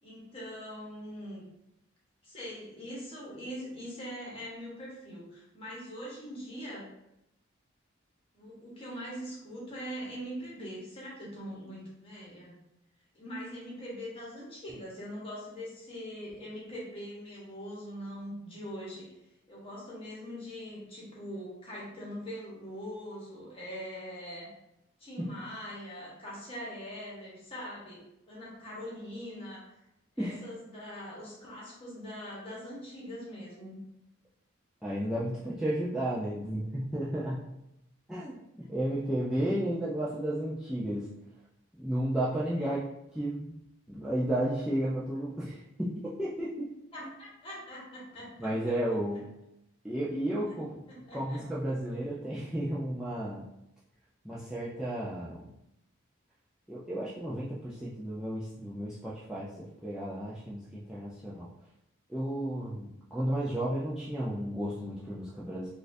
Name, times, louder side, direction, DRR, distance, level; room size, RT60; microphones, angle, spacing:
voice 1, 0.0-1.5 2.2-6.9 8.3-12.6 13.1-19.1 19.5-24.5 25.0-29.6 30.2-33.8 38.6-38.7 42.5-42.7 46.9-48.5 50.9-51.4, equal, 30° left, -6 dB, 1.1 m, -42 dB
voice 2, 34.8-37.4 38.1-41.1 41.8-42.8 43.1-43.5 43.9-46.7 47.0-47.1 48.4-49.2 49.8-50.8 51.1-53.4 54.2-55.5 56.7-61.5 62.1-65.7, right 1 dB, 5° right, -9 dB, 0.3 m, -33 dB
4.1 x 2.4 x 2.6 m, 0.84 s
head